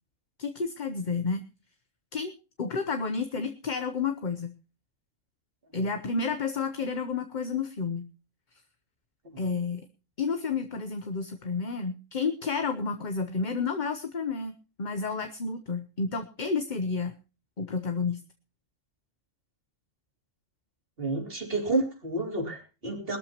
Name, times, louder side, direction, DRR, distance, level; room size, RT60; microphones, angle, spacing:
voice 1, 0.4-1.4 2.1-4.5 5.7-8.1 9.4-9.9 10.2-14.5 14.8-17.1 17.6-18.2, left 4 dB, 40° left, 7 dB, 1.0 m, -30 dB
voice 2, 21.0-23.2, right 2 dB, 45° right, 2 dB, 3.6 m, -30 dB
21.5 x 13.0 x 3.0 m, 0.32 s
omnidirectional pair, 1.3 m